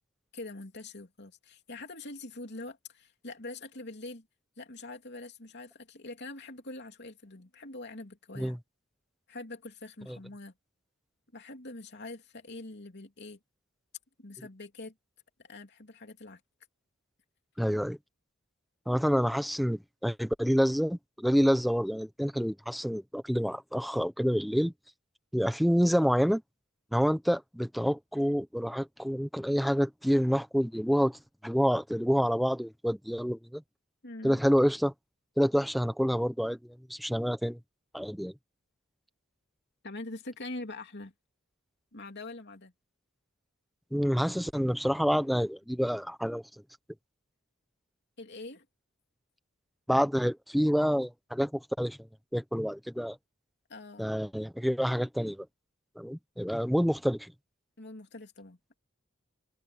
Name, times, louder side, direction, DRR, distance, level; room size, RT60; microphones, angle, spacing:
voice 1, 0.3-4.3 4.6-8.6 9.3-10.5 11.3-13.4 14.2-14.9 15.4-16.4 34.0-34.4 39.8-41.1 41.9-42.7 48.2-48.6 53.7-54.1 57.8-58.6, left 2 dB, 55° left, 3.1 m, -44 dB
voice 2, 17.6-18.0 18.9-24.7 25.3-26.4 26.9-33.6 34.2-34.9 35.4-36.6 36.9-37.6 37.9-38.3 43.9-46.4 49.9-52.0 52.3-53.2 54.0-55.4 56.0-57.3, equal, ahead, 1.1 m, -28 dB
open air
head